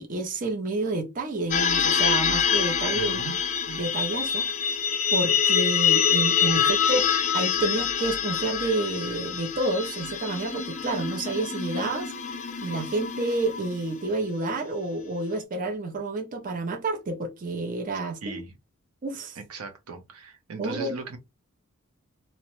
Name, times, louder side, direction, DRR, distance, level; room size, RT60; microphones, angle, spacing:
voice 1, 0.0-3.2 3.7-4.8 5.1-7.1 7.3-12.1 12.6-18.4 19.0-19.4 20.6-20.9, right 2 dB, 35° right, 0.5 m, -29 dB
sound 1, 1.5-14.0, left 7 dB, 35° left, 0.4 m, -26 dB
voice 2, 2.9-3.4 18.2-18.5 19.4-21.2, right 4 dB, 85° right, 0.7 m, -38 dB
2.8 x 2.1 x 3.0 m
head